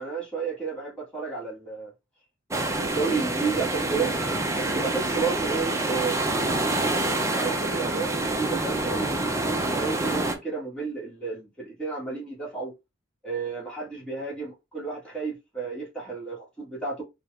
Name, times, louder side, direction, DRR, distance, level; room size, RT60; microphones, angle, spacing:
voice 1, 0.0-1.9 2.6-4.2 4.5-6.5 7.3-12.7 13.2-17.0, right 4 dB, 5° left, 1.9 m, -32 dB
sound 1, 2.5-10.3, right 2 dB, 15° right, 0.7 m, -27 dB
4.5 x 2.4 x 3.3 m
head